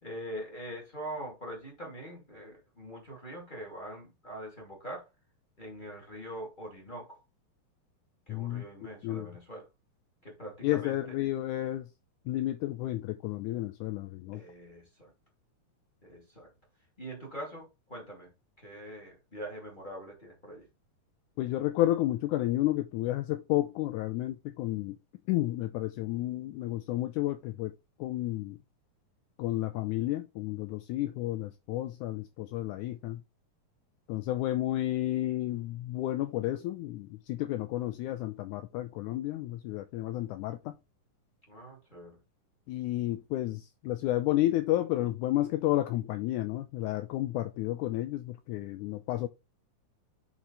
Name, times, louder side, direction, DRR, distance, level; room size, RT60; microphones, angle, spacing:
voice 1, 0.0-5.1 5.6-7.2 8.3-9.7 10.2-11.0 14.3-15.1 16.0-16.5 17.0-20.7 41.5-42.2, right 1 dB, 15° left, 2.0 m, -43 dB
voice 2, 8.3-8.6 9.0-9.3 10.6-11.9 12.3-14.4 21.4-25.0 25.3-27.7 28.0-28.6 29.4-33.2 34.1-40.7 42.7-49.3, left 15 dB, 85° left, 1.8 m, -31 dB
7.2 x 4.4 x 3.9 m
omnidirectional pair, 4.1 m